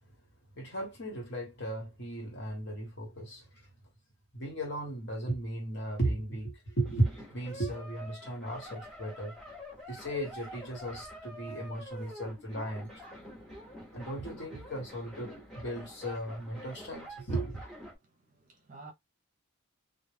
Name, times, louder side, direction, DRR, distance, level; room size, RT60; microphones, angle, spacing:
voice 1, 0.6-3.7 4.3-9.3 9.9-12.9 13.9-17.6, right 1 dB, 55° left, 1.1 m, -35 dB
sound 1, 6.8-18.0, equal, 5° left, 0.7 m, -47 dB
voice 2, 18.0-18.9, right 3 dB, 35° right, 0.6 m, -52 dB
2.3 x 2.0 x 3.2 m
head